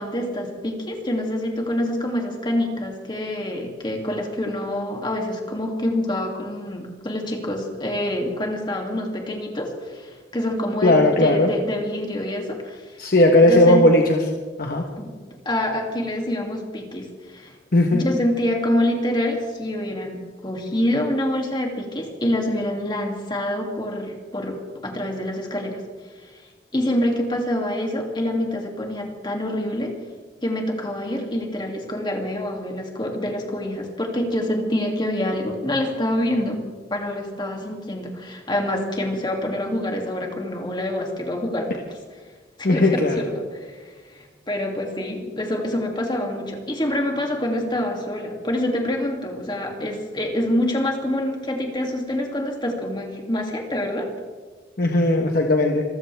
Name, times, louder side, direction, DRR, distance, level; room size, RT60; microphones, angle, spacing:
voice 1, 0.0-13.0 13.5-13.8 15.0-15.1 15.4-17.5 17.9-24.5 24.8-25.8 26.2-26.3 26.7-29.9 30.4-36.6 36.9-41.9 42.6-54.1, left 1 dB, 25° left, 1 dB, 2.7 m, -26 dB
voice 2, 10.8-11.5 13.0-14.2 14.6-14.8 17.7-18.0 42.6-43.2 54.8-55.8, left 1 dB, 55° left, 2 dB, 1.3 m, -17 dB
26.5 x 15.0 x 3.5 m, 1.4 s
head